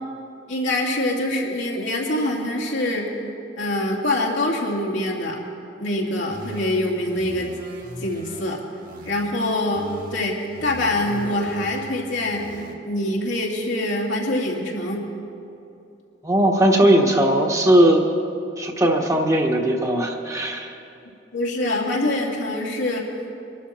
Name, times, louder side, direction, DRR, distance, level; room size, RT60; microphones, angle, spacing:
voice 1, 0.5-3.1 3.6-5.4 5.8-7.5 8.0-8.6 9.0-10.4 10.6-12.4 12.8-15.0 21.3-23.1, left 1 dB, 90° left, -2 dB, 2.5 m, -24 dB
sound 1, 6.3-9.3 9.7-12.7, equal, 50° right, 1.6 m, -39 dB
voice 2, 16.2-18.0 18.6-20.7, right 1 dB, 20° right, 2 dB, 1.2 m, -18 dB
23.5 x 12.5 x 4.4 m, 2.7 s
head